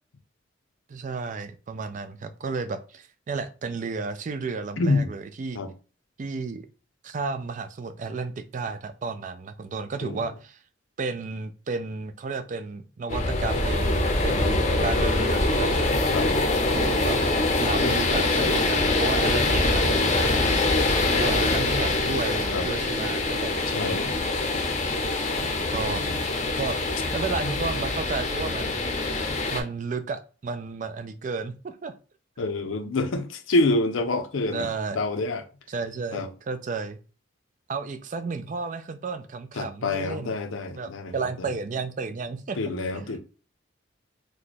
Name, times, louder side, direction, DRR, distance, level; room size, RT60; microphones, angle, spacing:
voice 1, 0.9-5.6 6.2-6.7 7.0-10.6 11.0-15.7 16.6-17.2 17.6-20.4 21.2-23.5 23.8-24.3 25.7-26.2 26.6-26.8 27.1-28.8 29.5-31.9 34.5-35.0 35.7-37.0 37.7-40.3 40.8-42.6 42.9-43.1, right 4 dB, 40° right, 0.3 m, -32 dB
voice 2, 4.8-5.1 5.5-5.7 10.0-10.2 16.1-16.3 17.8-18.6 19.3-19.5 22.5-22.7 23.6-24.1 25.7-26.1 27.4-27.5 32.4-34.7 34.9-35.4 36.1-36.3 39.6-41.5 42.6-43.2, left 2 dB, 90° left, 0.6 m, -27 dB
sound 1, 13.1-29.6, left 2 dB, 35° left, 0.6 m, -24 dB
3.0 x 2.2 x 4.0 m
head